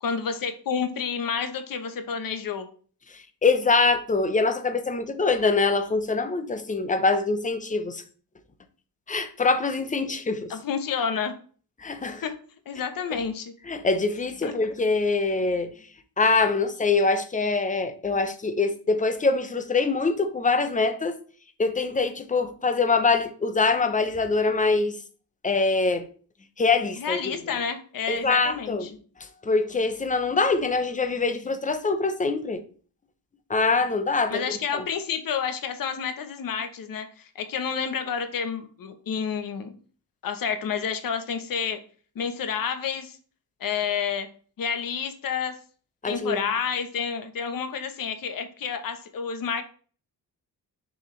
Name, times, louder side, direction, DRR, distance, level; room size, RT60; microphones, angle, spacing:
voice 1, 0.0-2.7 10.5-11.3 12.2-12.3 12.7-13.5 14.4-14.5 27.0-28.9 34.3-39.7 40.2-41.8 42.1-43.2 43.6-44.3 44.6-45.5 46.0-49.6, left 6 dB, 55° left, 1.0 m, -29 dB
voice 2, 3.1-8.0 9.1-10.5 11.8-12.2 13.7-15.7 16.2-21.2 21.6-25.0 25.4-26.1 26.6-27.3 28.1-28.9 29.4-32.6 33.5-34.4 34.7-34.8 46.0-46.4, left 3 dB, 20° left, 0.7 m, -24 dB
6.6 x 4.8 x 3.2 m
cardioid pair, 140°, 40 cm